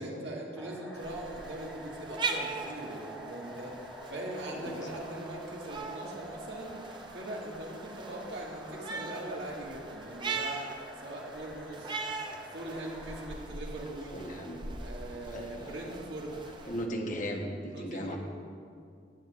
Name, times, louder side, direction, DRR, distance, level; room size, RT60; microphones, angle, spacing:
voice 1, 0.0-3.7 4.1-6.8 7.1-10.6 11.0-11.9 12.5-14.2 14.8-16.4 17.7-18.2, right 1 dB, 75° right, -2 dB, 1.8 m, -41 dB
sound 1, 0.5-13.4, equal, ahead, 1.0 m, -48 dB
sound 2, 0.9-16.9, right 4 dB, 25° right, 0.6 m, -41 dB
voice 2, 14.1-14.6 15.3-16.0 16.6-18.2, equal, 45° left, 2 dB, 1.0 m, -37 dB
14.5 x 9.7 x 2.5 m, 2.3 s
head